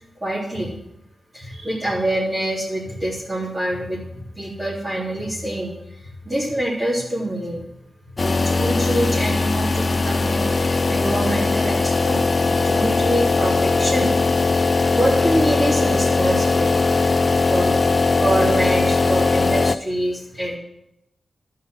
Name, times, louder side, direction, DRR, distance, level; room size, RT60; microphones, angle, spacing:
voice 1, 0.2-0.7 1.3-5.8 6.2-7.6 8.2-16.9 17.5-20.6, right 1 dB, 25° right, -8 dB, 3.6 m, -25 dB
sound 1, 8.2-19.7, left 3 dB, 45° left, 0.4 m, -19 dB
12.5 x 5.8 x 5.9 m, 0.82 s
cardioid pair, 65°, 0 cm